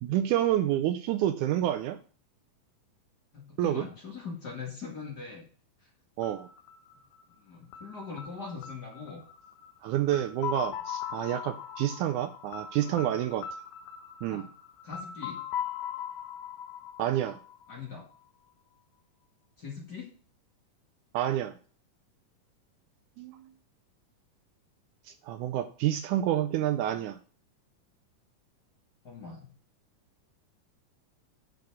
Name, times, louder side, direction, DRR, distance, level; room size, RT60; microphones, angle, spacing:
voice 1, 0.0-2.0 3.6-3.9 6.2-6.5 9.8-13.5 14.2-14.5 17.0-17.4 21.1-21.6 23.2-23.5 25.1-27.2, right 12 dB, 80° right, 10 dB, 1.9 m, -28 dB
voice 2, 3.3-5.5 7.4-9.2 14.3-14.5 14.8-15.4 17.7-18.1 19.6-20.1 29.0-29.5, left 5 dB, 35° left, -2 dB, 2.1 m, -41 dB
sound 1, 6.2-18.0, left 9 dB, 80° left, 1.5 m, -40 dB
10.5 x 5.0 x 4.8 m, 0.41 s
omnidirectional pair, 3.8 m